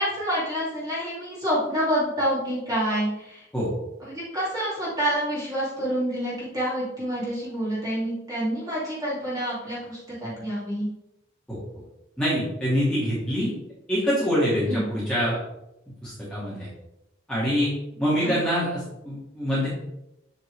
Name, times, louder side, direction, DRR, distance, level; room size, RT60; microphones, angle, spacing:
voice 1, 0.0-3.4 4.0-10.9 14.7-14.8 18.2-18.4, equal, 15° right, -8 dB, 2.3 m, -27 dB
voice 2, 12.2-13.5 13.9-15.4 16.0-16.7 17.3-17.7 18.0-19.7, equal, 5° left, -10 dB, 1.9 m, -25 dB
8.0 x 4.3 x 3.2 m, 0.88 s
head